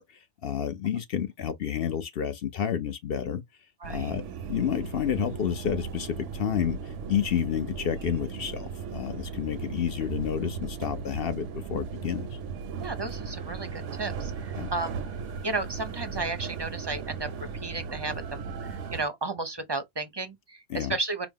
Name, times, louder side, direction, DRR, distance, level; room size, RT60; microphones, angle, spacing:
voice 1, 0.4-3.4 3.9-4.2 4.5-12.4 14.6-14.7 20.7-21.0, left 9 dB, 60° left, 0.7 m, -30 dB
voice 2, 3.8-4.1 12.8-15.0 15.4-17.3 17.6-21.3, right 3 dB, 30° right, 0.5 m, -33 dB
sound 1, 3.8-19.1, right 6 dB, 90° right, 1.0 m, -37 dB
4.8 x 2.0 x 3.5 m
omnidirectional pair, 1.2 m